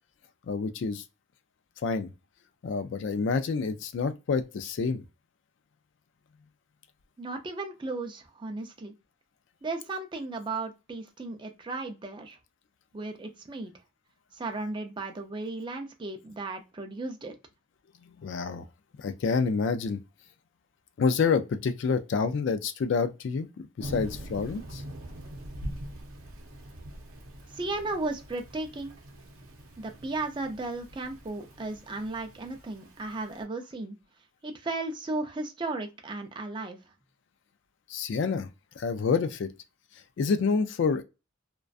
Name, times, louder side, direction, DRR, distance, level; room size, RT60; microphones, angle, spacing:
voice 1, 0.5-1.0 1.8-2.1 2.6-5.0 18.2-18.6 19.0-20.0 21.0-24.8 37.9-38.5 38.8-39.5 40.2-41.0, left 5 dB, 60° left, 0.3 m, -28 dB
voice 2, 7.2-8.9 9.6-12.4 12.9-13.7 14.3-17.3 27.5-28.9 29.8-34.0 34.4-36.8, right 2 dB, 25° right, 0.4 m, -35 dB
Thunder / Rain, 23.8-33.4, right 1 dB, 80° right, 0.6 m, -43 dB
2.4 x 2.2 x 2.3 m
head